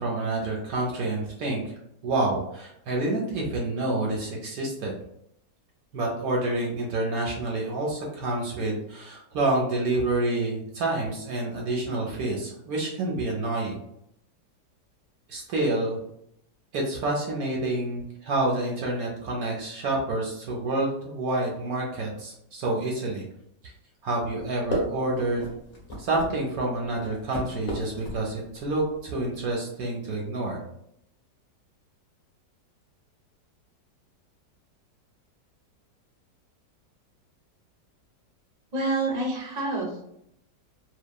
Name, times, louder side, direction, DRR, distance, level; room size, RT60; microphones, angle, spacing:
voice 1, 0.0-1.7 2.0-5.0 5.9-13.7 15.3-16.0 16.7-23.2 24.0-25.5 26.0-30.6, right 2 dB, 70° right, -2 dB, 0.9 m, -28 dB
sound 1, 24.4-29.6, equal, 75° left, 0.3 m, -37 dB
voice 2, 38.7-40.2, right 2 dB, 50° right, -2 dB, 0.5 m, -28 dB
2.8 x 2.1 x 2.2 m, 0.76 s
omnidirectional pair, 1.9 m